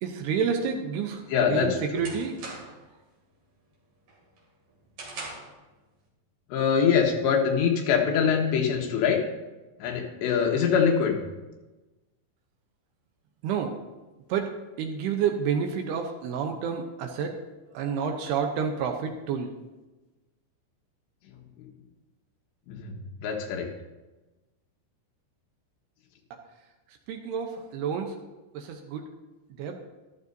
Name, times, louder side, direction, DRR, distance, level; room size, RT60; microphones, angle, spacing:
voice 1, 0.0-1.2 1.5-2.3 13.4-13.7 14.3-14.5 14.8-17.4 17.7-19.5 27.1-28.1 28.5-29.1 29.6-29.8, right 7 dB, 75° right, 4 dB, 2.6 m, -29 dB
sound 1, 1.2-2.9 3.3-3.7 4.1-5.6, right 3 dB, 45° right, 3.3 m, -42 dB
voice 2, 1.3-1.8 6.5-9.2 9.8-11.2 22.7-23.0 23.2-23.7, left 7 dB, 80° left, 1 dB, 3.4 m, -23 dB
14.0 x 12.0 x 2.7 m, 1.1 s
omnidirectional pair, 5.2 m